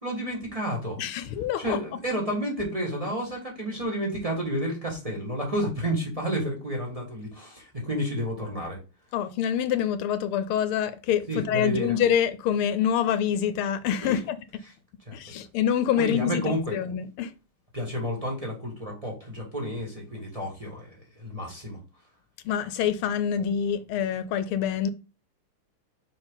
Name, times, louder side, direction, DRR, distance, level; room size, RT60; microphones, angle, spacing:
voice 1, 0.0-1.0 1.6-8.8 11.3-11.9 14.0-14.2 15.1-15.2 16.0-16.8 17.7-21.8, equal, 20° right, 1.5 m, -30 dB
voice 2, 1.0-1.8 9.1-14.4 15.1-17.3 22.4-24.9, left 9 dB, 80° left, 1.4 m, -26 dB
5.6 x 4.4 x 3.8 m
omnidirectional pair, 2.4 m